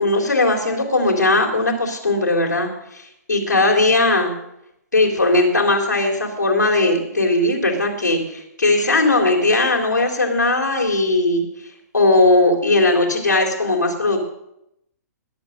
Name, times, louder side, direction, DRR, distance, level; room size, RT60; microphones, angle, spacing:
voice 1, 0.0-4.3 4.9-11.4 11.9-14.2, left 2 dB, 80° left, 0 dB, 3.8 m, -18 dB
20.0 x 8.3 x 6.4 m, 0.81 s
figure-of-eight pair, 115°, 9 cm